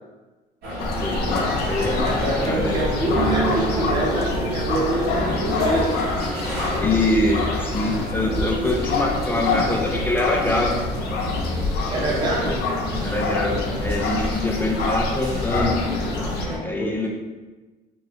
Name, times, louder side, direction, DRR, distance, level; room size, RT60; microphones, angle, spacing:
sound 1, 0.6-16.6, left 1 dB, 75° right, 1.4 m, -30 dB
sound 2, 0.8-16.5, left 3 dB, 75° left, 0.5 m, -27 dB
voice 1, 1.0-2.2 2.5-2.8 6.8-10.7 12.5-12.6 13.0-15.8 16.6-17.1, left 2 dB, 10° left, 0 dB, 0.3 m, -24 dB
voice 2, 1.9-6.0 11.9-12.6 16.8-17.1, right 1 dB, 25° right, -4 dB, 0.8 m, -26 dB
sound 3, 3.1-10.3, right 5 dB, 60° right, 0.7 m, -33 dB
3.2 x 2.2 x 3.0 m, 1.2 s
cardioid pair, 110°, 17 cm